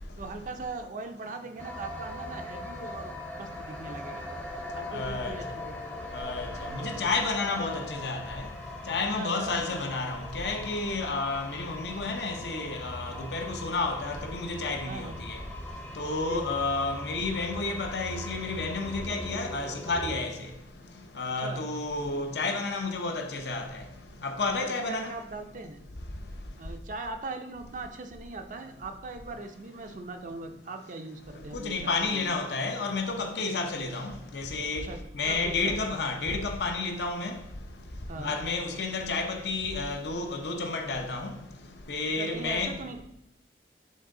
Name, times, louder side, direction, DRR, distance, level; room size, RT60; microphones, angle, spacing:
voice 1, 0.2-3.1 3.4-4.3 4.7-6.0 9.1-9.8 14.9-15.2 16.2-16.6 21.4-21.7 24.5-25.8 26.6-32.3 34.7-35.0 35.3-35.7 38.1-38.4 42.2-43.0, right 3 dB, 45° right, 0.5 m, -40 dB
sound 1, 1.6-20.2, left 1 dB, 10° left, 0.6 m, -40 dB
voice 2, 4.9-5.3 6.1-8.5 8.9-15.4 16.0-20.3 21.2-23.8 24.2-25.1 31.5-34.9 35.1-37.3 38.2-41.3 41.9-42.7, left 3 dB, 70° left, 0.7 m, -31 dB
7.3 x 3.7 x 3.7 m
head